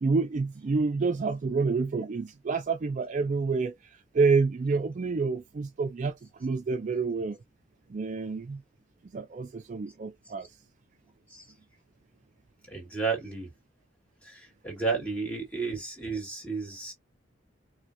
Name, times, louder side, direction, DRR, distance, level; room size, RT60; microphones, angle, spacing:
voice 1, 0.0-7.4 7.9-8.6 9.1-10.5, right 4 dB, 40° right, 0.3 m, -28 dB
voice 2, 12.7-13.5 14.2-16.9, right 4 dB, 5° left, 1.6 m, -32 dB
4.4 x 2.2 x 2.6 m
head